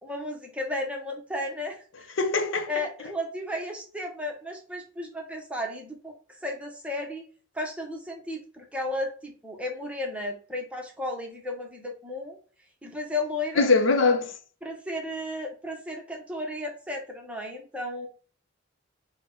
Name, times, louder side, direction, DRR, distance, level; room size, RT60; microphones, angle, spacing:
voice 1, 0.0-2.1 2.7-6.1 6.4-7.3 7.5-12.4 12.8-13.7 14.6-18.1, left 1 dB, 5° right, 0.7 m, -34 dB
voice 2, 2.2-2.8 13.6-14.3, left 3 dB, 75° left, 0.6 m, -22 dB
5.3 x 2.1 x 3.7 m
head